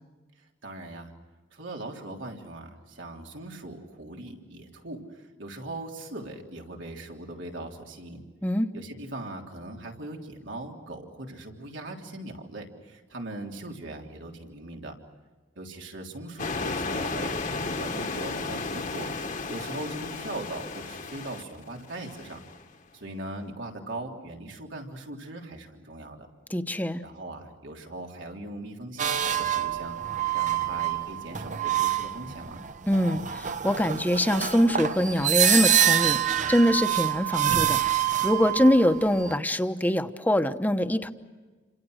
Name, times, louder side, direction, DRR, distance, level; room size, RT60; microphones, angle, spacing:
voice 1, 0.6-1.1 1.5-8.2 8.7-15.0 15.6-19.1 19.5-22.4 22.9-26.3 27.0-30.0 30.3-32.6, right 2 dB, 85° right, 1 dB, 3.4 m, -40 dB
sound 1, 16.4-22.6, left 3 dB, 45° left, 1.4 m, -33 dB
voice 2, 26.5-27.0 32.9-37.8 38.2-41.1, equal, 10° left, 8 dB, 1.0 m, -24 dB
sound 2, 29.0-39.3, right 10 dB, 45° right, 0.9 m, -26 dB
29.5 x 26.5 x 6.5 m, 1.3 s
head